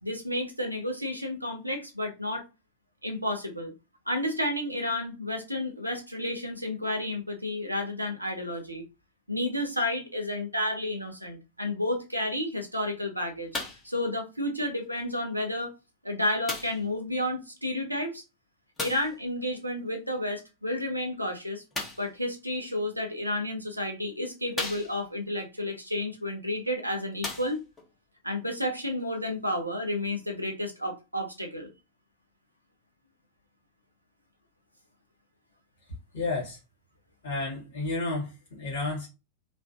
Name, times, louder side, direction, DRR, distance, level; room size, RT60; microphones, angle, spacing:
voice 1, 0.0-2.4 3.0-3.7 4.1-8.8 9.3-13.5 13.8-15.7 16.0-18.2 18.8-21.6 22.0-27.6 28.2-31.7, left 1 dB, 90° right, 0.7 m, -31 dB
sound 1, 13.5-13.9 14.8-14.9 16.5-16.9 18.8-19.2 21.7-22.1 23.1-23.2 23.8-23.9 24.5-25.2 26.5-26.6 27.1-27.9 28.7-28.8, left 2 dB, 15° left, 1.0 m, -36 dB
voice 2, 36.1-36.6 37.2-39.1, left 2 dB, 60° left, 1.4 m, -31 dB
3.1 x 2.1 x 2.7 m
figure-of-eight pair, 90°, 0 cm